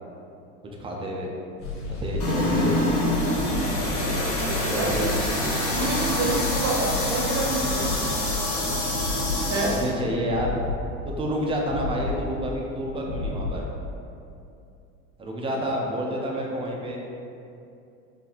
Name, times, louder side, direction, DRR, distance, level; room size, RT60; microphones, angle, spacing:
voice 1, 0.8-1.3 2.0-2.9 4.5-5.1 5.4-5.9 9.5-10.7 11.1-13.6 15.2-17.0, equal, 15° right, -1 dB, 0.4 m, -29 dB
sound 1, 1.6-14.1, left 2 dB, 80° left, 1.1 m, -32 dB
sound 2, 2.2-9.9, left 1 dB, 40° left, 1.1 m, -26 dB
voice 2, 4.8-5.1 5.7-7.9 9.5-9.7, right 3 dB, 50° right, -3 dB, 0.9 m, -27 dB
4.0 x 2.7 x 2.8 m, 2.6 s
supercardioid pair, 130°, 34 cm